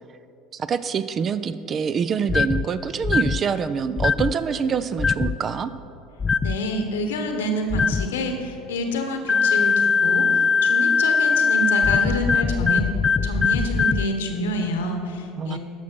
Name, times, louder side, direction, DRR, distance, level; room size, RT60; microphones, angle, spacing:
voice 1, 0.5-5.7 15.4-15.6, right 6 dB, 40° right, 14 dB, 0.4 m, -25 dB
sound 1, 2.3-2.6 3.0-3.4 4.0-4.3 5.0-5.4 6.2-6.6 7.7-8.1 9.3-14.1, left 5 dB, 30° left, 0.3 m, -20 dB
voice 2, 6.4-12.9 13.2-15.6, left 1 dB, 85° left, 5 dB, 1.1 m, -27 dB
12.5 x 6.0 x 4.6 m, 2.7 s
hypercardioid pair, 80°, 0 cm